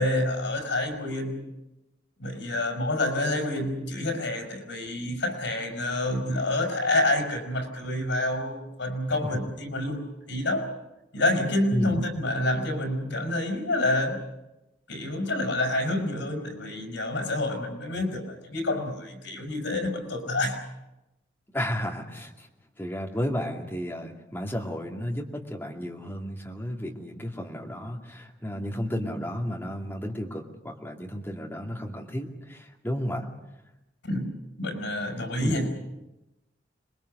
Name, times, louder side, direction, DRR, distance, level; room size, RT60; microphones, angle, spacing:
voice 1, 0.0-1.5 2.2-10.7 11.1-14.2 14.9-20.6 34.0-34.3 34.6-35.7, left 1 dB, 85° left, 4 dB, 5.4 m, -28 dB
voice 2, 21.5-22.5 22.8-33.3 35.4-35.6, equal, 10° left, 0 dB, 2.4 m, -33 dB
26.5 x 21.5 x 6.7 m, 0.97 s
head